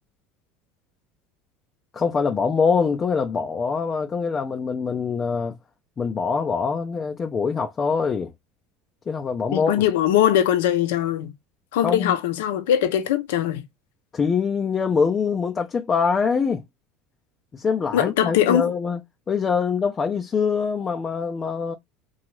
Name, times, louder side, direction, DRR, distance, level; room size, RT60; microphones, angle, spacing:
voice 1, 1.9-5.5 6.0-8.3 9.1-9.8 11.8-12.1 14.1-16.6 17.5-19.0 19.3-21.7, left 5 dB, 30° left, 0.4 m, -24 dB
voice 2, 9.5-11.3 11.7-13.6 17.9-18.7, left 10 dB, 85° left, 0.5 m, -21 dB
2.8 x 2.3 x 3.0 m
supercardioid pair, 105°, 0 cm